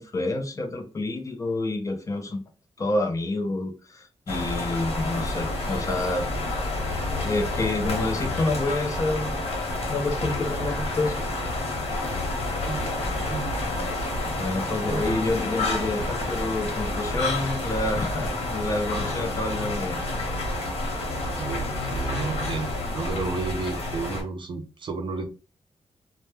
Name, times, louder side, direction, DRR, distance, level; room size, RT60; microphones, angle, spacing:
voice 1, 0.0-2.4 2.8-6.3 7.1-9.5 9.9-11.2 14.2-20.0, left 2 dB, 30° left, 4 dB, 0.5 m, -28 dB
sound 1, 4.3-24.2, left 2 dB, 85° left, 0.8 m, -29 dB
voice 2, 12.6-12.9 13.3-13.5 14.9-15.2 21.3-25.3, right 4 dB, 50° right, 6 dB, 0.5 m, -32 dB
2.1 x 2.1 x 3.0 m, 0.34 s
wide cardioid pair, 145°, 10 cm